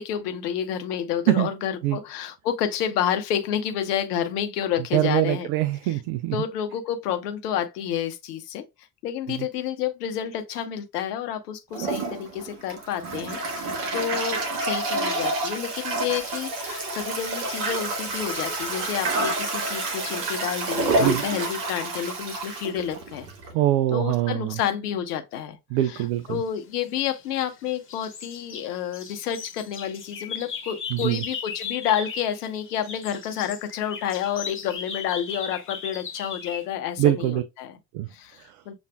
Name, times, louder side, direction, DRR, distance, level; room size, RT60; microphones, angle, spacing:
voice 1, 0.0-5.5 5.8-6.0 6.3-8.6 9.0-23.3 23.9-25.6 25.8-37.8 38.1-38.7, left 9 dB, 65° left, 0.8 m, -29 dB
voice 2, 4.9-6.4 21.0-21.2 23.5-24.5 25.7-26.4 30.9-31.2 37.0-37.4 37.9-38.1, right 14 dB, 50° right, 0.5 m, -23 dB
Toilet flush, 11.7-23.5, right 2 dB, 65° right, 1.2 m, -28 dB
sound 1, 26.7-27.6 27.9-32.4 32.6-36.7, left 5 dB, 25° left, 1.1 m, -37 dB
6.9 x 2.4 x 2.2 m
figure-of-eight pair, 55°, 50 cm